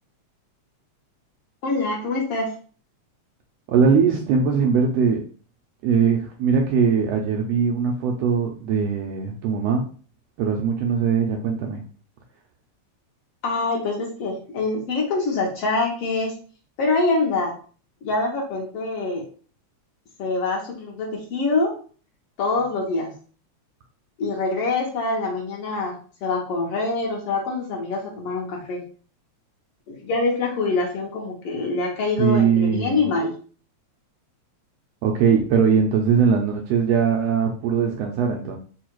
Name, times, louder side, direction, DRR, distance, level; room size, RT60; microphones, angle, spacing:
voice 1, 1.6-2.6 13.4-16.3 16.8-17.6 18.0-19.3 20.2-21.7 22.4-23.1 24.2-28.9 29.9-33.3, left 3 dB, 65° left, -1 dB, 1.8 m, -25 dB
voice 2, 3.7-5.2 5.8-9.9 10.4-11.8 32.2-33.1 35.0-38.6, right 6 dB, 80° right, 1 dB, 1.5 m, -20 dB
4.6 x 2.4 x 4.4 m, 0.40 s
omnidirectional pair, 3.3 m